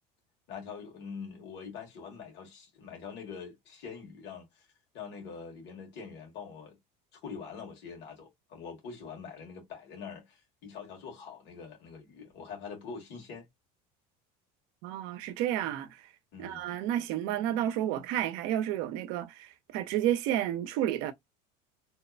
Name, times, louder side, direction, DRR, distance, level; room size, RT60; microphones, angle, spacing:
voice 1, 0.5-4.7 4.9-6.8 7.1-13.5 16.3-16.7, left 6 dB, 55° left, 1.4 m, -44 dB
voice 2, 14.8-15.9 16.4-21.1, right 12 dB, 70° right, 0.5 m, -31 dB
2.7 x 2.1 x 2.4 m
supercardioid pair, 100°, 21 cm